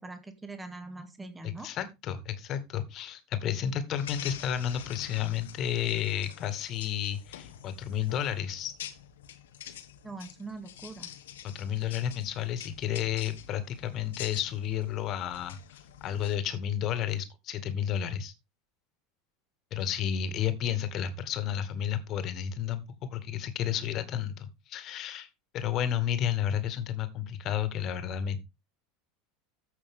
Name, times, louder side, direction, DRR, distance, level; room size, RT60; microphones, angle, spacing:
voice 1, 0.0-1.7 10.0-11.1, right 3 dB, 15° right, 8 dB, 2.0 m, -42 dB
voice 2, 1.4-8.7 11.4-18.3 19.7-25.3 25.5-28.4, left 10 dB, 45° left, 11 dB, 2.0 m, -32 dB
sound 1, 4.0-16.3, left 10 dB, 75° left, 1.4 m, -46 dB
14.0 x 6.3 x 3.7 m, 0.24 s
hypercardioid pair, 80°, 0 cm